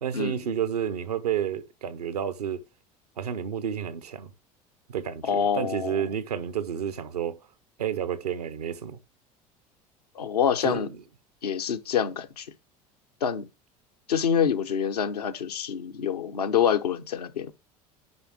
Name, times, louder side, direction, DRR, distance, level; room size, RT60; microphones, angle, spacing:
voice 1, 0.0-2.6 3.2-4.3 4.9-7.4 7.8-9.0 10.6-11.0, right 9 dB, 85° right, 0.8 m, -30 dB
voice 2, 5.2-6.1 10.1-10.9 11.4-12.5 13.2-13.5 14.1-17.5, left 8 dB, 85° left, 0.9 m, -26 dB
8.1 x 5.4 x 4.9 m
hypercardioid pair, 70°, 20 cm